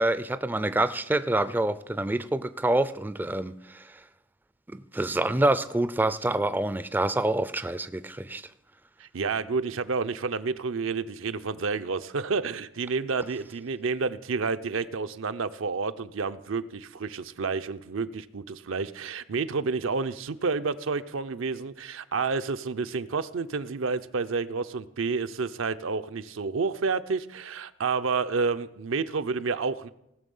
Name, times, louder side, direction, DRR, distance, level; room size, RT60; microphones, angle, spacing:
voice 1, 0.0-3.5 4.9-8.4, right 1 dB, 10° right, 13 dB, 0.3 m, -26 dB
voice 2, 9.0-29.9, right 4 dB, 85° right, 10 dB, 0.6 m, -30 dB
18.0 x 6.7 x 5.5 m, 0.84 s
head